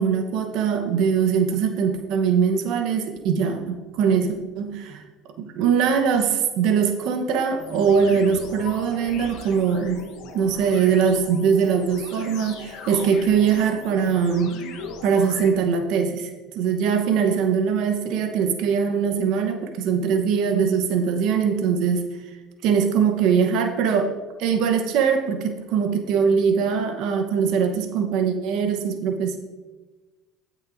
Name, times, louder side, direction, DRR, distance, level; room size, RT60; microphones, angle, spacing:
voice 1, 0.0-5.0 5.4-10.0 10.3-14.6 15.0-22.0 22.6-24.1 24.4-29.4, right 6 dB, 70° right, 5 dB, 1.0 m, -22 dB
sound 1, 7.6-15.5, left 5 dB, 70° left, 1.1 m, -39 dB
15.5 x 6.2 x 2.6 m, 1.2 s
supercardioid pair, 110°, 0 cm